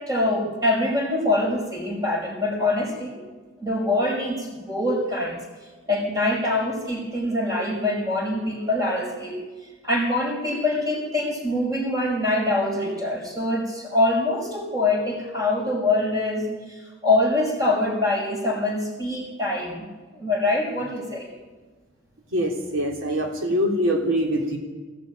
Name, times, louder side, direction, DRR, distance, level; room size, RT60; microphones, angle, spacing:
voice 1, 0.0-3.2 3.6-5.4 5.9-9.4 9.8-19.9 20.1-21.3, left 2 dB, 20° right, 1 dB, 5.1 m, -24 dB
voice 2, 22.3-24.6, equal, 85° right, 1 dB, 3.3 m, -24 dB
20.5 x 16.5 x 8.9 m, 1.4 s
head